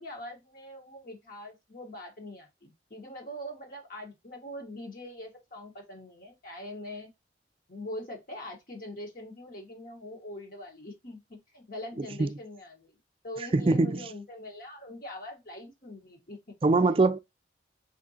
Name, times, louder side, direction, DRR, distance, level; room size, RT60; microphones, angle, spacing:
voice 1, 0.0-7.1 7.7-12.9 13.2-16.6 16.8-17.0, left 1 dB, 50° left, 1.3 m, -43 dB
voice 2, 13.5-14.0 16.6-17.2, right 3 dB, 30° right, 0.4 m, -22 dB
4.3 x 3.7 x 2.8 m
head